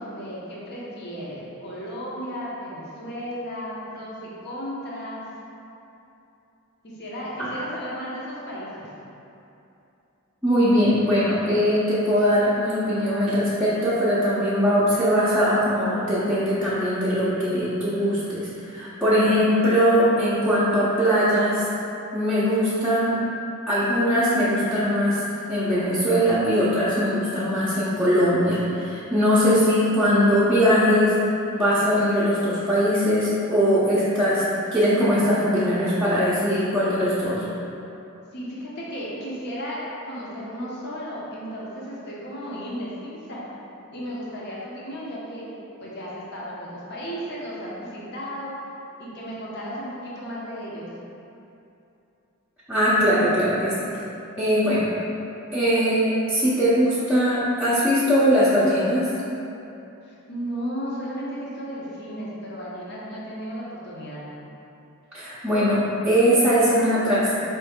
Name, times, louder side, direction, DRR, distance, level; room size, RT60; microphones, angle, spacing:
voice 1, 0.0-5.2 6.8-9.1 38.3-43.5 43.9-45.5 45.8-48.6 49.0-50.9 60.0-64.2, equal, 50° left, -6 dB, 0.9 m, -34 dB
voice 2, 10.4-21.6 22.1-23.2 23.7-25.2 25.5-31.1 31.5-34.4 34.7-37.4 52.7-53.9 54.4-54.9 55.5-59.1 65.1-67.3, equal, 10° right, -13 dB, 0.6 m, -21 dB
4.6 x 3.0 x 3.6 m, 2.8 s
head